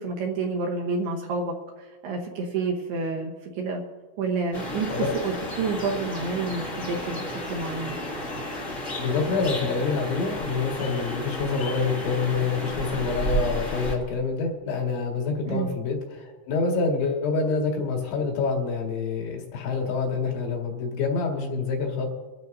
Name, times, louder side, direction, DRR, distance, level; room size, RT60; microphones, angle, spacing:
voice 1, 0.0-3.8 4.2-8.0 15.5-15.7, right 4 dB, 70° right, 1 dB, 2.7 m, -29 dB
sound 1, 4.5-13.9, equal, 40° left, 1.1 m, -32 dB
voice 2, 8.9-22.1, left 4 dB, 70° left, 0 dB, 4.2 m, -27 dB
24.0 x 12.5 x 2.7 m, 1.2 s
omnidirectional pair, 5.5 m